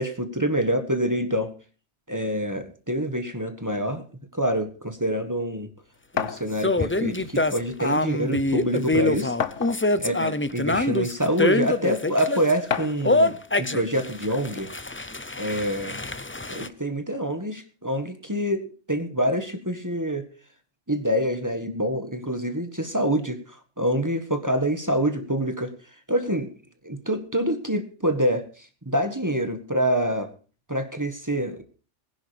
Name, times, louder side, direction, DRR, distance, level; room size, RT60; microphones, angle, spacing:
voice 1, 0.0-1.5 2.1-4.0 4.3-5.7 6.1-9.3 10.0-14.7 15.4-16.0 16.5-20.2 20.9-23.4 23.8-25.7 26.1-26.5 26.8-30.3 30.7-31.6, equal, 15° right, 8 dB, 1.5 m, -26 dB
sound 1, 6.2-6.4 7.6-7.7 8.1-8.2 9.4-10.0 10.9-11.0 12.7-13.1, left 8 dB, 80° left, 1.3 m, -28 dB
sound 2, 6.6-12.5 13.0-16.7, left 2 dB, 15° left, 0.4 m, -25 dB
20.0 x 10.5 x 3.3 m, 0.38 s
omnidirectional pair, 1.2 m